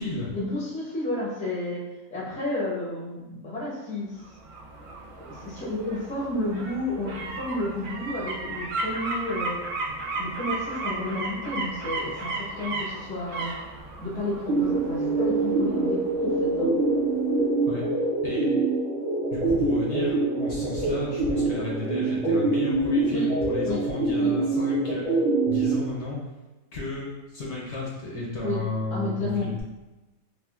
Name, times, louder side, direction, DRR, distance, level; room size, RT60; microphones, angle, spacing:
voice 1, 0.3-1.8 2.1-4.2 5.2-9.6 10.2-13.5 14.0-16.7 23.1-23.3 23.7-23.8 24.2-24.3 28.4-28.6 28.9-29.5, left 2 dB, 10° left, -6 dB, 0.4 m, -31 dB
sound 1, 4.2-17.0 17.4-17.5, right 3 dB, 85° right, 1.1 m, -35 dB
sound 2, 14.5-25.7, right 3 dB, 45° right, 0.6 m, -25 dB
voice 2, 19.2-25.2 25.4-26.2 26.7-29.6, left 2 dB, 60° left, -4 dB, 0.8 m, -33 dB
3.6 x 2.3 x 2.3 m, 1.1 s
omnidirectional pair, 1.5 m